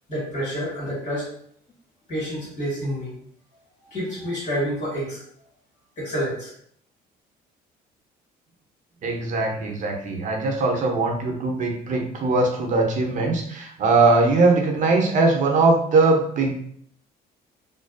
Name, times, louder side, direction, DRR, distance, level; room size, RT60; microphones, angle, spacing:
voice 1, 0.1-1.3 2.1-3.2 3.8-5.2 6.0-6.5, equal, 45° left, -6 dB, 1.4 m, -28 dB
voice 2, 9.0-16.6, right 3 dB, 50° right, 2 dB, 0.6 m, -21 dB
2.4 x 2.2 x 2.4 m, 0.64 s
cardioid pair, 110°, 17 cm